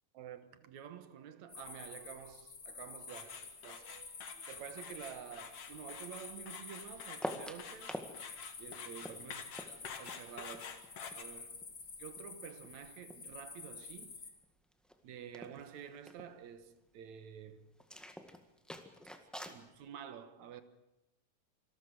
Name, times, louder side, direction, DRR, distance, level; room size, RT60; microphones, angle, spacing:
voice 1, 0.1-4.1 4.3-8.0 8.6-11.6 12.0-14.2 15.0-17.8 19.4-20.6, right 8 dB, 70° right, 2.5 m, -50 dB
sound 1, 1.5-14.3, left 5 dB, 35° left, 2.8 m, -50 dB
sound 2, 3.1-11.2, left 7 dB, 55° left, 2.5 m, -48 dB
sound 3, 7.2-8.1 8.4-11.2 11.5-13.3 13.6-14.1 14.4-14.5 14.7-15.0 15.3-16.3 17.8-19.6, equal, ahead, 0.6 m, -46 dB
26.5 x 13.5 x 7.8 m
omnidirectional pair, 3.6 m